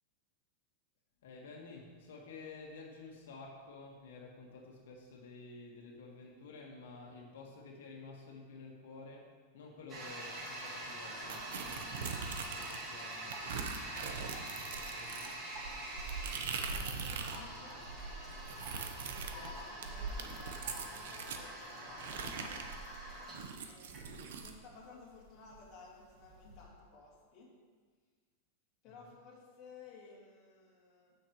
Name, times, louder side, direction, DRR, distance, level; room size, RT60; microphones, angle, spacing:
voice 1, 1.2-13.4 13.8-14.0 14.4-15.4 29.0-29.1, left 3 dB, 80° left, -1 dB, 1.7 m, -52 dB
Toilet flush, 9.9-26.6, right 1 dB, 20° right, 1.8 m, -45 dB
sound 1, 11.3-12.9 13.3-17.5 17.7-21.4 22.0-24.6, right 5 dB, 70° right, 0.8 m, -42 dB
voice 2, 16.8-17.9 18.8-22.7 23.7-23.9 24.4-27.5 28.8-31.1, left 3 dB, 30° left, -5 dB, 2.2 m, -56 dB
14.5 x 6.4 x 3.1 m, 1.5 s
supercardioid pair, 170°, 0 cm